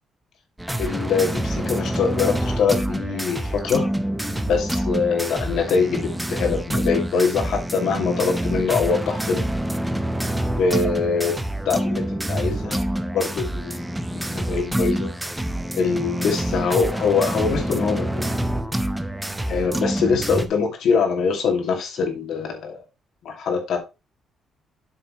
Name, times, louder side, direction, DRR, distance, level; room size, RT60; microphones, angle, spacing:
sound 1, 0.6-20.5, right 1 dB, 10° right, 0.8 m, -26 dB
voice 1, 0.8-3.9 4.3-9.4 10.6-11.4 11.7-12.8 13.1-15.1 15.7-18.3 19.5-22.8 23.2-23.8, left 5 dB, 75° left, 2.2 m, -23 dB
7.9 x 6.6 x 3.1 m
cardioid pair, 90°, 0 cm